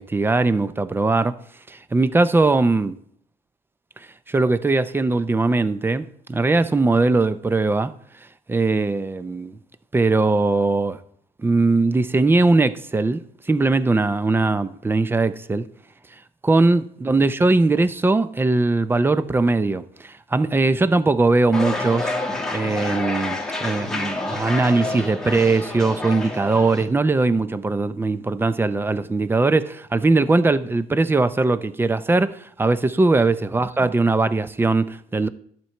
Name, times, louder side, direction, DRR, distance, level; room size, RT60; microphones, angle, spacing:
voice 1, 0.0-1.4 1.7-2.9 4.3-7.9 8.5-9.6 9.9-11.0 11.4-13.2 13.5-15.6 16.4-22.1 22.5-35.3, right 3 dB, 15° right, 0.5 m, -20 dB
sound 1, 21.5-26.9, left 2 dB, 5° left, 1.8 m, -28 dB
11.0 x 4.5 x 7.5 m
cardioid pair, 110°, 17 cm